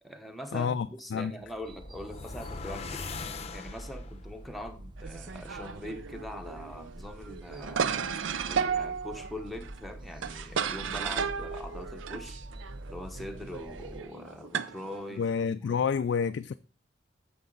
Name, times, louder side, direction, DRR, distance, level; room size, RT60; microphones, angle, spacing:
voice 1, 0.0-3.1 3.5-8.1 8.5-12.4 12.9-15.9, left 1 dB, ahead, 1.0 m, -42 dB
voice 2, 0.5-1.3 15.2-16.5, left 6 dB, 65° left, 0.3 m, -29 dB
sound 1, 1.4-4.2, left 4 dB, 35° left, 0.7 m, -41 dB
sound 2, 1.6-14.0, right 1 dB, 25° right, 0.5 m, -46 dB
sound 3, 5.0-15.4, right 6 dB, 90° right, 0.5 m, -34 dB
9.2 x 6.7 x 3.9 m
head